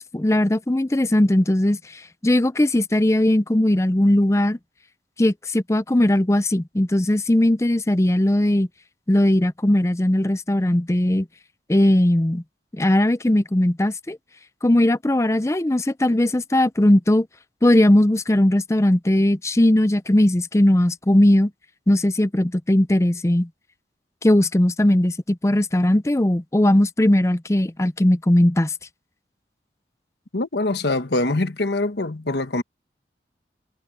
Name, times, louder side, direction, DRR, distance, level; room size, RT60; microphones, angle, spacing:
voice 1, 0.0-4.6 5.2-8.7 9.1-11.3 11.7-12.4 12.7-14.2 14.6-17.3 17.6-21.5 21.9-23.5 24.2-28.7, left 1 dB, 15° left, 0.5 m, -19 dB
voice 2, 30.3-32.6, left 2 dB, 70° left, 1.3 m, -24 dB
head